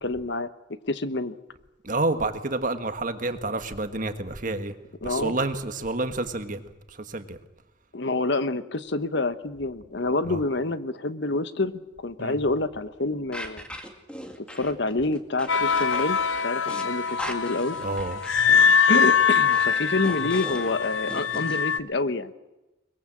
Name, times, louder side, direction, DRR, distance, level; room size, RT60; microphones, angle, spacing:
voice 1, 0.0-0.5 0.9-1.3 5.0-5.4 7.9-13.7 14.5-17.8 18.5-18.6 18.9-22.3, left 2 dB, 60° left, 12 dB, 1.2 m, -27 dB
voice 2, 1.8-4.7 5.0-6.6 6.9-7.4 10.3-10.4 12.2-12.4 17.8-18.2, right 2 dB, 40° right, 8 dB, 1.5 m, -29 dB
sound 1, 13.3-21.6, equal, 5° left, 2.1 m, -39 dB
sound 2, 15.5-21.8, left 6 dB, 75° left, 0.9 m, -23 dB
23.0 x 21.5 x 7.5 m, 1.0 s
head